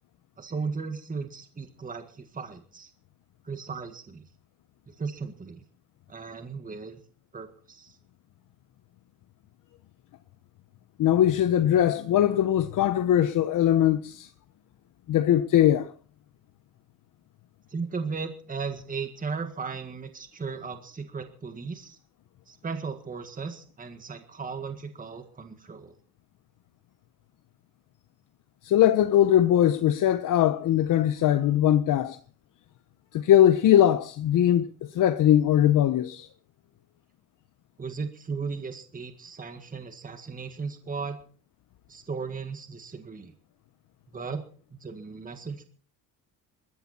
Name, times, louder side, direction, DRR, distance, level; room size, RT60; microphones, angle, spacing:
voice 1, 0.4-2.9 3.4-4.3 4.9-5.6 6.1-7.0 7.3-8.0 17.7-22.0 22.5-26.0 37.8-41.2 41.9-43.3 44.1-44.4 44.7-45.6, right 5 dB, 25° right, 1.8 m, -36 dB
voice 2, 11.0-14.3 15.1-15.9 28.6-32.2 33.1-36.3, left 11 dB, 60° left, 0.9 m, -21 dB
20.5 x 14.0 x 4.3 m
cardioid pair, 130°, 36 cm